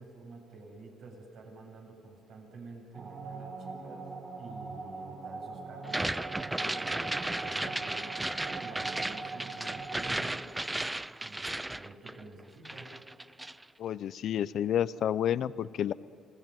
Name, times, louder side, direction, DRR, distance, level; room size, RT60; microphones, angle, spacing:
voice 1, 0.0-6.0 6.5-8.3 8.6-10.6 11.2-13.0, right 3 dB, 70° right, 0 dB, 7.4 m, -49 dB
sound 1, 2.9-10.0, right 4 dB, 40° right, 6.7 m, -42 dB
sound 2, 5.8-12.4 12.7-13.6, right 1 dB, 10° right, 0.5 m, -35 dB
voice 2, 13.8-15.9, left 10 dB, 65° left, 17 dB, 0.6 m, -30 dB
27.5 x 18.0 x 9.3 m, 2.2 s
cardioid pair, 80°, 0 cm